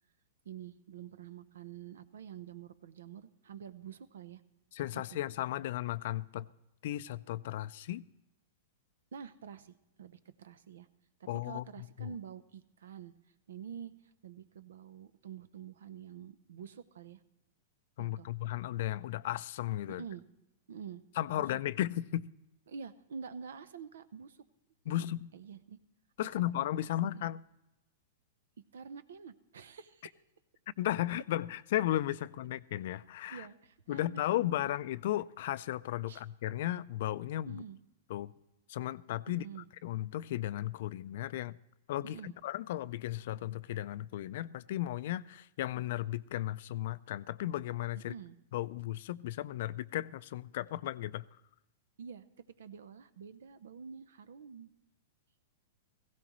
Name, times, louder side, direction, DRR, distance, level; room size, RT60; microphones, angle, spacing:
voice 1, 0.4-4.4 4.9-5.2 9.1-10.9 11.2-13.1 13.5-13.9 14.2-17.2 18.0-18.3 19.9-20.2 20.7-21.0 21.3-21.6 22.7-24.4 24.8-25.0 25.3-25.8 26.2-26.7 27.0-27.3 28.7-30.2 33.3-34.7 36.1-36.2 37.5-37.8 39.3-39.7 42.0-42.4 48.0-48.4 52.0-52.2 52.6-54.7, right 7 dB, 85° right, 0.8 m, -47 dB
voice 2, 4.8-6.5 6.8-8.0 11.3-12.1 18.0-20.0 21.2-22.3 24.9-25.2 26.2-27.4 30.8-33.5 33.9-37.6 38.1-38.3 38.7-39.4 39.8-41.6 41.9-48.1 48.5-51.2, left 14 dB, 60° left, 0.4 m, -35 dB
17.0 x 16.0 x 3.1 m
hypercardioid pair, 140°, 0 cm